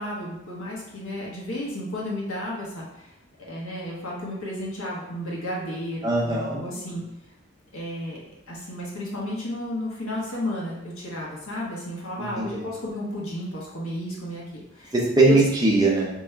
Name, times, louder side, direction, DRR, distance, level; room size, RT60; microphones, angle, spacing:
voice 1, 0.0-3.1 3.4-7.0 7.7-14.9 15.2-15.4, left 1 dB, 85° left, -4 dB, 1.3 m, -33 dB
voice 2, 6.0-6.6 6.9-7.0 12.2-12.6 14.9-16.1, right 2 dB, 20° right, -3 dB, 0.7 m, -21 dB
3.6 x 3.1 x 4.4 m, 0.84 s
head